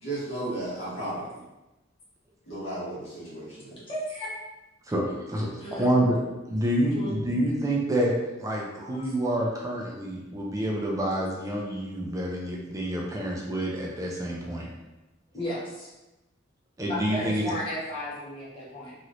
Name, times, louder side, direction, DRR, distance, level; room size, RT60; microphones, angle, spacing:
voice 1, 0.0-1.4 2.5-3.8, right 1 dB, 85° left, -8 dB, 1.4 m, -34 dB
voice 2, 3.9-4.3 5.6-6.0 6.9-7.2 8.9-9.0 15.3-15.9 16.9-18.9, left 1 dB, 30° left, -8 dB, 1.0 m, -34 dB
voice 3, 5.3-6.2 6.5-14.7 16.8-17.5, right 1 dB, 15° right, -2 dB, 0.4 m, -27 dB
3.0 x 3.0 x 2.5 m, 1.0 s
head